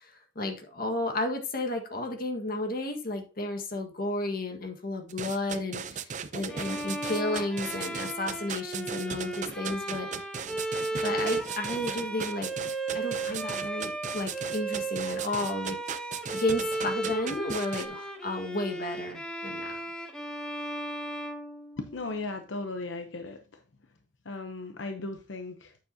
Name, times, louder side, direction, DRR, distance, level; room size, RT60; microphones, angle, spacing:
voice 1, 0.0-10.1 11.0-15.8 16.3-19.8, left 2 dB, 50° left, 4 dB, 1.6 m, -33 dB
sound 1, 5.1-17.9, right 6 dB, 40° right, 0.5 m, -37 dB
Bowed string instrument, 6.5-22.2, right 2 dB, 5° left, 0.9 m, -35 dB
voice 2, 21.8-23.6 24.2-25.8, left 3 dB, 75° left, 6 dB, 0.8 m, -37 dB
9.3 x 7.0 x 2.8 m, 0.33 s
head